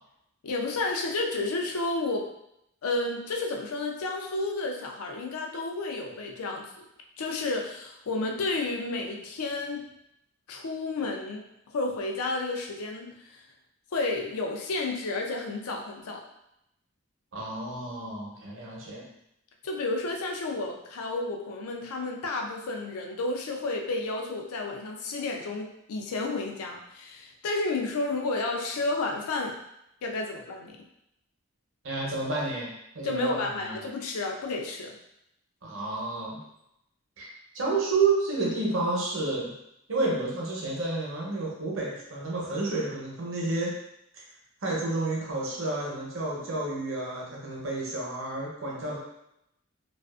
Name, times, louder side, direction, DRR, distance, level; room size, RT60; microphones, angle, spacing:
voice 1, 0.4-2.3 2.8-6.8 7.2-9.9 10.5-13.4 13.9-16.2 19.6-29.5 30.0-30.8 33.0-34.9, left 3 dB, 90° left, 1 dB, 0.4 m, -31 dB
voice 2, 17.3-19.1 31.8-33.8 35.6-36.4 37.2-37.3 37.5-39.5 39.9-43.7 44.6-49.0, right 3 dB, 65° right, -3 dB, 0.7 m, -30 dB
2.4 x 2.4 x 2.3 m, 0.81 s
head